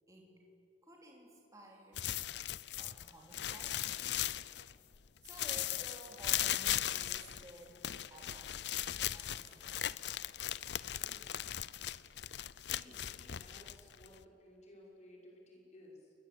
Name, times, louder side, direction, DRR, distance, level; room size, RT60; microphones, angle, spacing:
voice 1, 0.8-2.0 2.8-4.0 4.7-4.9 5.2-7.8 8.1-8.7 9.1-10.0, right 1 dB, 15° right, -1 dB, 3.5 m, -55 dB
sound 1, 1.9-4.9 5.2-14.2, left 12 dB, 65° left, 0.6 m, -38 dB
voice 2, 10.9-11.8 12.6-16.1, left 1 dB, 35° left, -1 dB, 6.0 m, -58 dB
28.5 x 21.5 x 8.7 m, 2.9 s
head